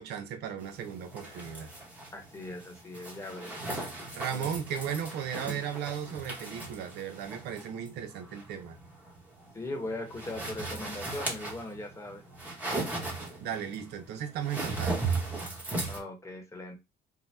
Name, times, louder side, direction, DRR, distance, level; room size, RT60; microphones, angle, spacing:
voice 1, 0.0-1.7 4.1-8.8 13.4-15.1, right 8 dB, 80° right, 0.6 m, -36 dB
sound 1, 0.6-16.0, right 3 dB, 10° right, 0.9 m, -37 dB
voice 2, 2.1-3.5 4.3-4.5 9.5-12.2 15.9-16.8, left 2 dB, 15° left, 0.9 m, -39 dB
2.7 x 2.1 x 3.2 m
cardioid pair, 110°, 17 cm